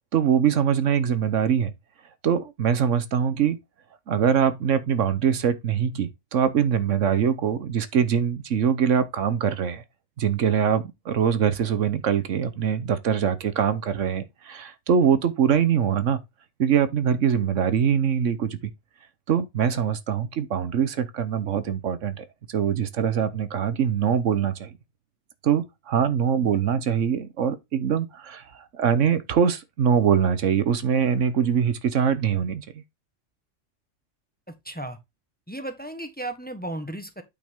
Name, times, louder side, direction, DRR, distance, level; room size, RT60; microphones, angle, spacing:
voice 1, 0.1-1.7 2.2-3.6 4.1-9.8 10.2-16.2 16.6-18.7 19.3-24.7 25.4-28.5 28.7-32.6, right 8 dB, 75° right, 1.2 m, -23 dB
voice 2, 34.5-35.0 35.5-37.2, right 1 dB, 10° left, 1.3 m, -35 dB
8.7 x 5.9 x 3.6 m
omnidirectional pair, 1.3 m